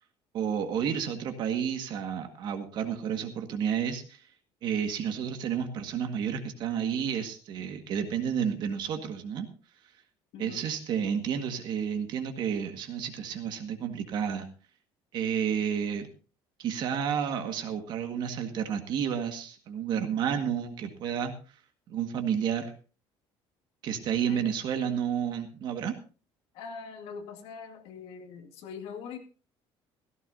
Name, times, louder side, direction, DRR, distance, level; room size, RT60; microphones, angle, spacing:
voice 1, 0.3-4.2 4.6-9.5 10.4-14.5 15.1-16.1 16.6-21.3 21.9-22.7 23.8-25.9, right 8 dB, 45° right, 6 dB, 1.8 m, -31 dB
voice 2, 10.3-10.7 24.3-24.5 26.5-29.2, left 6 dB, 65° left, 4 dB, 2.2 m, -42 dB
16.5 x 14.5 x 2.7 m, 0.36 s
cardioid pair, 180°, 10 cm